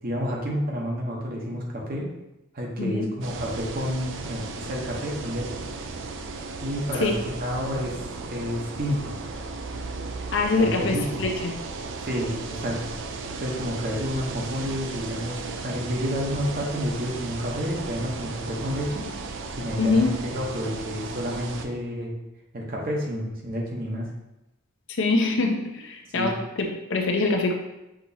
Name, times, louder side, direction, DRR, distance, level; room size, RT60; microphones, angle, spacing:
voice 1, 0.0-2.1 2.5-5.6 6.6-7.9 8.3-9.1 10.6-11.2 12.0-13.0 13.4-19.1 19.6-22.1 22.5-24.1 26.1-26.3, equal, 45° right, -2 dB, 0.9 m, -30 dB
sound 1, 3.2-21.7, right 3 dB, 60° right, 0.4 m, -35 dB
voice 2, 10.3-11.5 19.8-20.1 25.0-27.5, left 3 dB, 60° left, 2 dB, 0.6 m, -24 dB
6.0 x 2.9 x 2.7 m, 0.94 s
head